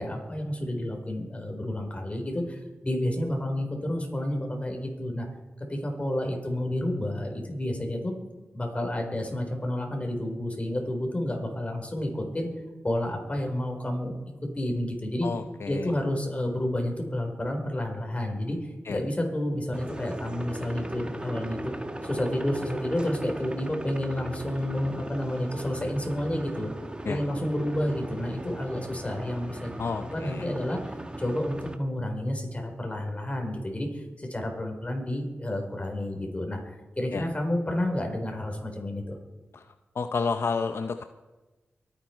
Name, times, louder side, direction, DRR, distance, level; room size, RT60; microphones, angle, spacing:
voice 1, 0.0-5.3 5.7-8.1 8.5-12.5 12.8-14.1 14.5-15.3 15.7-21.7 22.0-26.7 27.1-39.2, left 1 dB, 30° left, 3 dB, 4.3 m, -30 dB
voice 2, 15.2-15.9 18.9-19.0 27.1-27.2 29.8-30.5 37.1-37.2 39.5-39.6 40.0-41.0, left 5 dB, 65° left, 9 dB, 0.6 m, -30 dB
sound 1, 19.7-31.8, right 1 dB, 20° right, 1.4 m, -38 dB
23.5 x 9.5 x 4.5 m, 1.2 s
cardioid pair, 50°, 5 cm